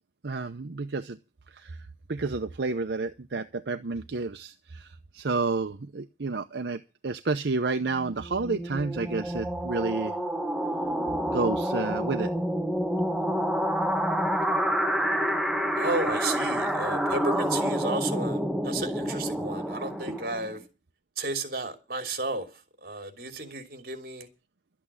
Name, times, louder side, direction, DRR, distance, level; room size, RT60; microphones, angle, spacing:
voice 1, 0.2-1.2 1.5-1.8 2.1-10.2 11.2-12.3 14.3-14.4, right 3 dB, 80° right, 0.8 m, -30 dB
sound 1, 8.2-20.6, equal, 5° right, 1.2 m, -28 dB
voice 2, 15.8-20.6 21.2-22.5 22.8-24.3, right 2 dB, 55° right, 3.0 m, -33 dB
12.5 x 8.6 x 8.6 m
head